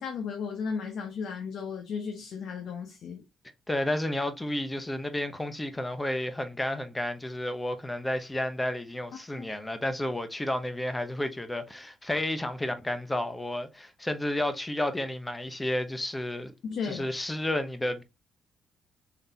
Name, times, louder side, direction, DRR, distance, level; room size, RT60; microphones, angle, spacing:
voice 1, 0.0-3.2 9.4-9.5 16.6-17.1, left 6 dB, 70° left, 0.8 m, -35 dB
voice 2, 3.7-16.5 16.8-18.0, left 1 dB, 10° left, 0.7 m, -31 dB
4.0 x 3.4 x 2.7 m
cardioid pair, 90°, 0 cm